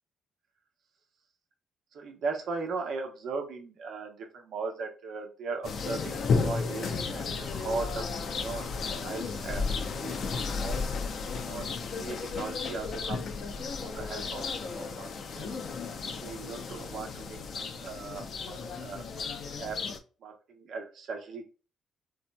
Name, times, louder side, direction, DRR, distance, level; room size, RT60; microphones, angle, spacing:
voice 1, 1.9-8.7 9.0-10.2 10.4-10.9 11.5-13.3 13.7-14.4 14.7-15.6 16.0-19.8 20.2-21.4, right 4 dB, 70° right, 3 dB, 1.0 m, -38 dB
sound 1, 5.6-20.0, left 4 dB, 60° left, 0.6 m, -33 dB
4.1 x 2.8 x 2.2 m, 0.34 s
cardioid pair, 90°, 0 cm